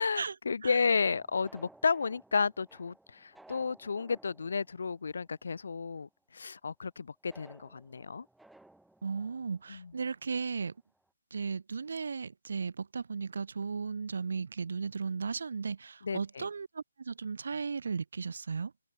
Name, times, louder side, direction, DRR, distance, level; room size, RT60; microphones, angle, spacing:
voice 1, 0.0-8.3 9.7-9.9 16.0-16.5, left 5 dB, 55° left, 0.3 m, -32 dB
sound 1, 0.9-5.6 5.9-6.0 7.3-10.2 10.7-10.8 11.0-11.1, right 2 dB, ahead, 1.7 m, -59 dB
voice 2, 9.0-10.7 11.3-18.7, right 5 dB, 55° right, 0.4 m, -36 dB
figure-of-eight pair, 140°, 0 cm